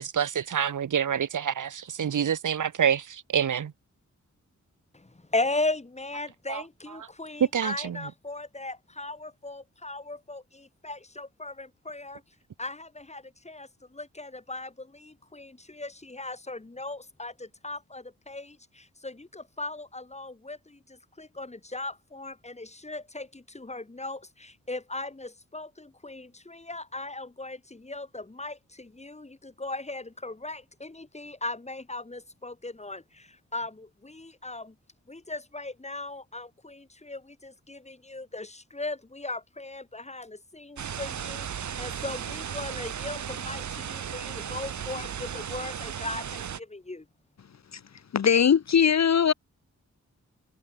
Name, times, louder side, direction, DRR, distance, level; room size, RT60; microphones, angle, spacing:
voice 1, 0.0-3.7 6.5-6.6 7.5-8.0, right 8 dB, 85° right, 1.3 m, -27 dB
voice 2, 4.9-34.8 35.1-47.1, left 2 dB, 20° left, 4.1 m, -38 dB
sound 1, 40.8-46.6, right 8 dB, 70° right, 0.9 m, -35 dB
voice 3, 48.1-49.3, left 7 dB, 60° left, 0.9 m, -20 dB
wide cardioid pair, 120°, 30 cm